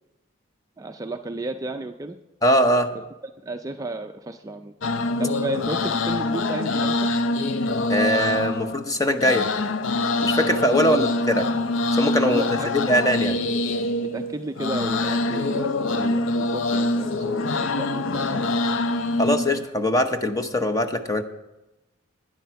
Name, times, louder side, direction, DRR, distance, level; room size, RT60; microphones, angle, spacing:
voice 1, 0.8-2.2 3.4-4.7 5.2-7.1 10.9-11.1 12.3-12.7 14.1-18.5, right 2 dB, 15° right, 6 dB, 0.4 m, -33 dB
voice 2, 2.4-2.9 7.9-9.5 10.2-11.4 12.0-13.4 19.2-21.2, equal, 15° left, 7 dB, 0.8 m, -22 dB
sound 1, 4.8-19.7, left 2 dB, 65° left, 0.6 m, -25 dB
12.0 x 10.0 x 4.6 m, 0.99 s
head